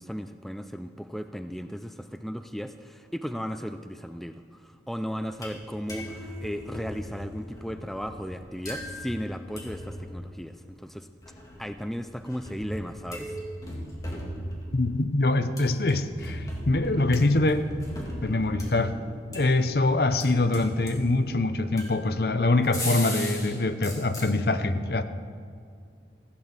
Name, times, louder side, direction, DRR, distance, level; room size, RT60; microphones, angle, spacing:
voice 1, 0.0-11.1 11.6-13.4, equal, ahead, 8 dB, 0.4 m, -35 dB
sound 1, 5.2-5.6 5.9-10.2 11.2-15.0 15.6-19.9 20.2-21.3 21.8-23.6 23.8-24.3, left 1 dB, 20° left, 2.4 m, -38 dB
voice 2, 14.7-17.7 18.2-19.0 19.3-25.0, left 2 dB, 60° left, 10 dB, 0.7 m, -24 dB
15.5 x 8.5 x 7.3 m, 2.3 s
head